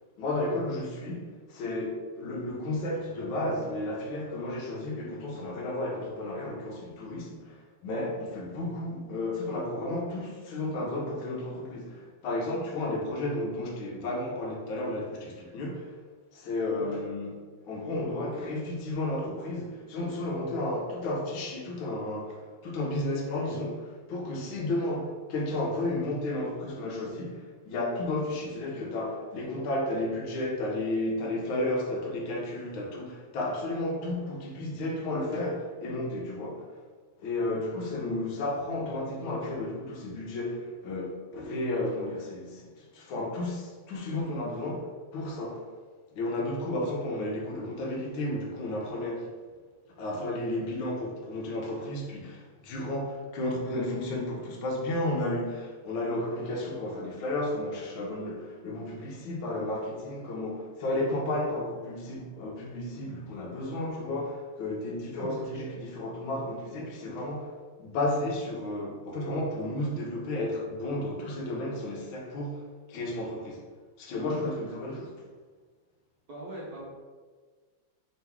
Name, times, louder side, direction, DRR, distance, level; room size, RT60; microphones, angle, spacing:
voice 1, 0.2-7.6 7.8-15.9 16.3-17.3 17.7-36.7 37.2-45.6 46.1-49.3 50.0-67.5 67.8-72.6 72.9-73.6 74.0-75.2, left 1 dB, 75° left, 1.4 m, -33 dB
voice 2, 65.2-65.9 76.3-76.9, right 1 dB, 60° right, 1.0 m, -41 dB
3.8 x 2.9 x 3.4 m
omnidirectional pair, 2.4 m